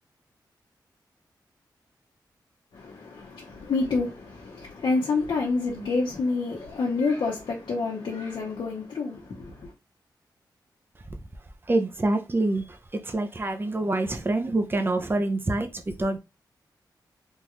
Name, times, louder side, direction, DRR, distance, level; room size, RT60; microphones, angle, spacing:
voice 1, 2.7-9.7, left 3 dB, 80° left, 1.0 m, -28 dB
voice 2, 11.7-12.6 12.9-15.7 16.0-16.2, right 2 dB, 30° right, 0.7 m, -26 dB
3.7 x 2.5 x 3.0 m
cardioid pair, 80°, 8 cm